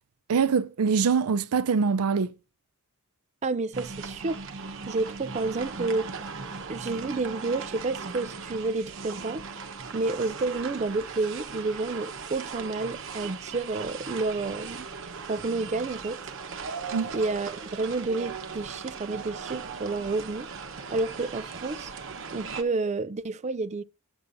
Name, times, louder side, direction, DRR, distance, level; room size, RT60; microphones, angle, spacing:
voice 1, 0.3-2.3 16.9-17.1, right 5 dB, 85° right, 0.5 m, -24 dB
voice 2, 3.4-4.4 4.9-6.1 6.7-9.4 9.9-16.2 17.1-20.5 20.9-21.9 22.3-23.8, right 3 dB, 30° right, 0.4 m, -30 dB
sound 1, 3.7-22.6, right 5 dB, 60° right, 0.9 m, -38 dB
9.5 x 7.9 x 2.6 m
head